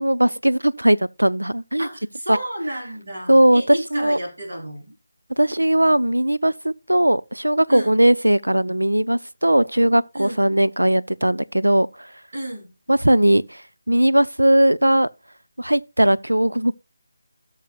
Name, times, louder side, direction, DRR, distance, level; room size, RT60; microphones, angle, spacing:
voice 1, 0.0-1.9 2.3-2.4 3.3-4.2 5.4-12.1 12.9-13.6 13.9-15.1 15.6-16.7, right 1 dB, 85° right, 0.6 m, -18 dB
voice 2, 1.8-4.9 7.7-8.0 10.1-10.4 12.3-12.7, right 1 dB, 70° right, 4.2 m, -31 dB
17.5 x 6.6 x 2.4 m
figure-of-eight pair, 155°, 0 cm